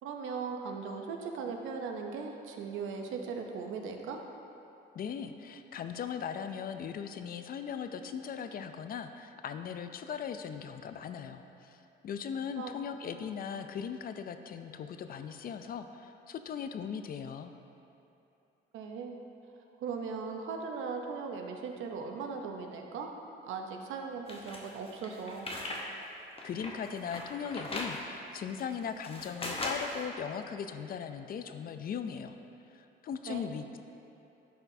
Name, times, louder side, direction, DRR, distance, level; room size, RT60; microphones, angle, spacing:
voice 1, 0.0-4.2 12.6-12.7 18.7-19.2 19.8-23.1 23.4-25.5 33.3-33.5, right 5 dB, 85° right, 3 dB, 0.7 m, -38 dB
voice 2, 4.9-11.8 12.0-17.5 26.4-32.3 32.7-33.8, left 7 dB, 50° left, 8 dB, 0.4 m, -39 dB
sound 1, 24.3-25.8 26.2-28.0 28.6-30.0, left 2 dB, 30° left, 0.9 m, -38 dB
11.0 x 4.3 x 2.7 m, 2.8 s
cardioid pair, 90°, 20 cm